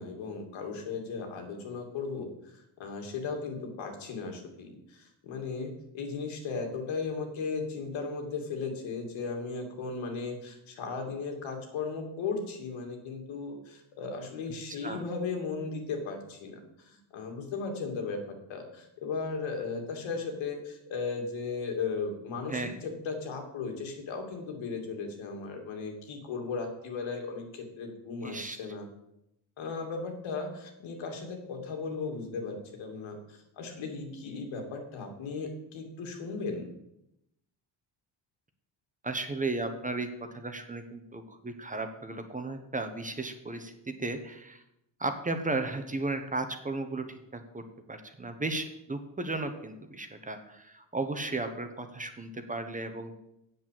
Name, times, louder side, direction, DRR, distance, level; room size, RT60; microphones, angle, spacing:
voice 1, 0.0-28.9 29.6-36.7, left 4 dB, 85° left, 3 dB, 2.7 m, -36 dB
voice 2, 14.7-15.1 22.5-22.8 28.2-28.6 39.0-44.6 45.0-53.1, right 2 dB, 15° right, 7 dB, 1.1 m, -35 dB
8.1 x 7.5 x 7.6 m, 0.84 s
cardioid pair, 125°, 45 cm